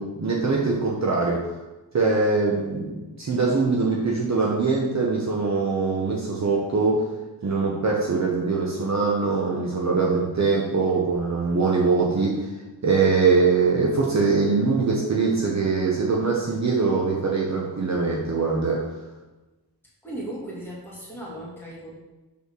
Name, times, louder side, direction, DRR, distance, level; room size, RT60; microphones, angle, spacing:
voice 1, 0.0-1.5 1.9-2.9 3.2-7.0 7.4-12.4 12.8-18.8, right 4 dB, 40° right, -2 dB, 0.9 m, -22 dB
voice 2, 20.0-21.9, right 1 dB, 5° left, -7 dB, 2.2 m, -36 dB
5.5 x 4.3 x 6.2 m, 1.1 s
wide cardioid pair, 170°, 41 cm